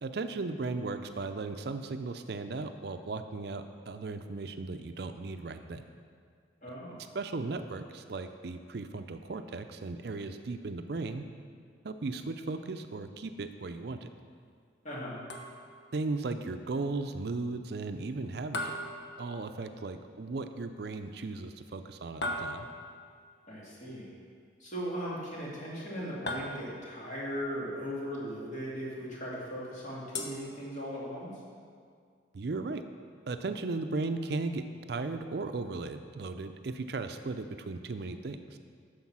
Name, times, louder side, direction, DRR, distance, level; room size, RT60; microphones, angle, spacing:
voice 1, 0.0-5.8 7.1-11.2 11.8-14.1 15.9-18.6 19.2-22.7 32.3-32.8 33.3-38.4, right 3 dB, 60° right, 8 dB, 0.5 m, -36 dB
voice 2, 6.6-7.0 14.8-15.2 23.5-24.1 24.6-31.3, equal, 40° left, -6 dB, 2.5 m, -38 dB
sound 1, 15.3-15.9 18.5-19.8 22.2-23.1 26.3-27.1 30.1-31.2, left 1 dB, 70° left, 1.0 m, -38 dB
9.6 x 6.6 x 6.1 m, 2.1 s
head